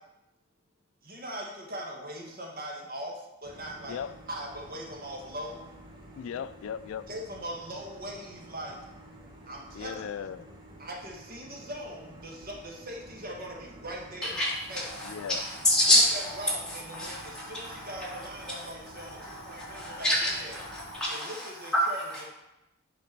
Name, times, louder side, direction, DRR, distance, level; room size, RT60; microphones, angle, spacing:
voice 1, 1.0-4.0 4.3-5.6 7.1-8.8 9.5-10.0 10.8-14.4 14.7-14.8 16.1-20.1 20.4-20.5 21.1-22.0, equal, 45° right, -2 dB, 1.6 m, -40 dB
sound 1, 3.4-21.0, right 1 dB, 20° right, 1.3 m, -50 dB
voice 2, 6.2-7.0 9.7-10.5 15.0-15.4, left 8 dB, 70° left, 15 dB, 0.3 m, -37 dB
voice 3, 14.2-18.7 19.0-22.3, equal, 5° left, -8 dB, 2.7 m, -29 dB
8.5 x 5.1 x 5.2 m, 0.94 s
head